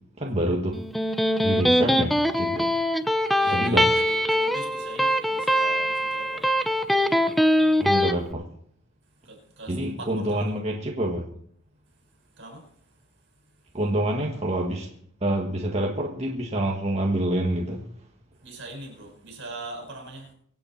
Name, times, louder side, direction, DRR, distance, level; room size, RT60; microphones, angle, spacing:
voice 1, 0.2-0.8 1.4-2.7 3.5-3.9 7.8-8.4 9.7-11.2 13.7-14.9 15.2-17.8, right 1 dB, 30° right, -1 dB, 1.7 m, -26 dB
Electric guitar, 0.7-8.1, equal, ahead, 0.7 m, -22 dB
voice 2, 3.4-6.5 7.0-7.4 9.2-10.6 12.4-12.7 18.4-20.3, right 2 dB, 55° right, 1 dB, 6.1 m, -41 dB
24.5 x 8.6 x 4.5 m, 0.65 s
head